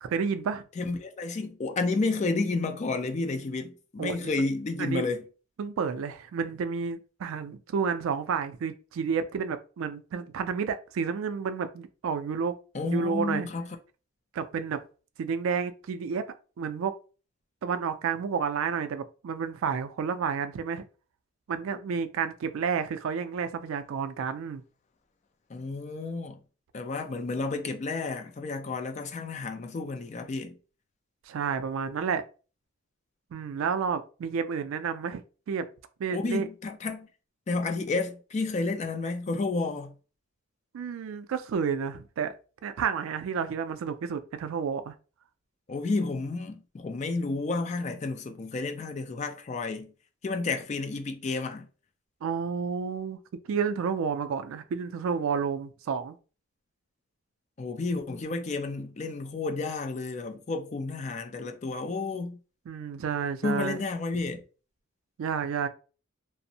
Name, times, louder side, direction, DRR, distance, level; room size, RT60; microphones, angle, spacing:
voice 1, 0.0-0.6 4.0-4.5 4.8-5.1 5.6-12.5 12.9-13.5 14.3-14.8 15.2-16.2 16.6-16.9 17.6-20.9 21.5-24.6 31.3-32.2 33.3-35.7 36.0-36.5 40.7-42.3 42.6-44.9 52.2-53.2 53.5-56.2 62.7-63.8 65.2-65.7, right 6 dB, 75° right, 0.3 m, -30 dB
voice 2, 0.8-5.2 12.7-13.7 25.5-26.4 26.7-30.6 36.1-37.1 37.5-40.0 45.7-49.9 50.2-51.7 57.6-62.4 63.4-64.4, left 3 dB, 35° left, 0.3 m, -31 dB
2.5 x 2.0 x 2.7 m
head